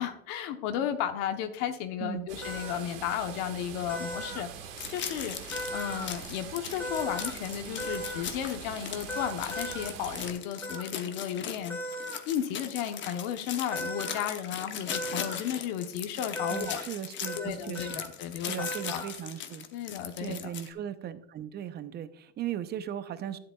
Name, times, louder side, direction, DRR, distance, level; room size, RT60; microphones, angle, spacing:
voice 1, 0.0-16.8 17.4-19.0 19.7-20.5, left 9 dB, 60° left, 7 dB, 1.0 m, -34 dB
sound 1, 2.3-10.3, right 8 dB, 70° right, 1.7 m, -44 dB
sound 2, 2.4-2.8 3.9-4.4 5.5-6.1 6.8-7.3 7.8-8.2 9.1-9.9 10.6-10.8 11.7-12.2 13.7-14.2 14.9-15.4 16.4-16.8 17.3-17.5 17.7-18.1 18.6-19.1, equal, 5° left, 1.7 m, -37 dB
sound 3, 4.8-20.7, left 8 dB, 30° left, 0.9 m, -39 dB
voice 2, 16.5-18.0 18.5-19.7 20.2-23.4, right 10 dB, 30° right, 13 dB, 0.6 m, -37 dB
11.5 x 10.0 x 2.3 m, 0.73 s
supercardioid pair, 130°, 37 cm